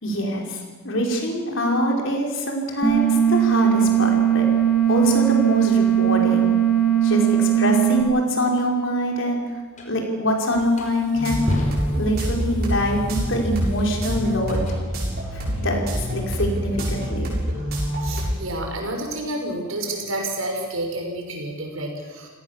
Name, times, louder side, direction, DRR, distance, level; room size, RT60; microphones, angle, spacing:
voice 1, 0.0-4.5 4.9-6.5 7.0-9.4 9.9-11.4 12.0-14.7 15.3-15.8 16.1-17.3, equal, 60° left, 1 dB, 5.2 m, -24 dB
sound 1, 2.8-8.0, right 10 dB, 5° left, 7.5 m, -19 dB
sound 2, 9.8-9.9 10.5-14.8, left 1 dB, 35° left, 5.0 m, -32 dB
sound 3, 11.1-18.4, equal, 45° right, 7.3 m, -26 dB
voice 2, 18.0-22.3, right 1 dB, 75° right, 2 dB, 6.2 m, -29 dB
29.5 x 17.5 x 7.5 m, 1.4 s
head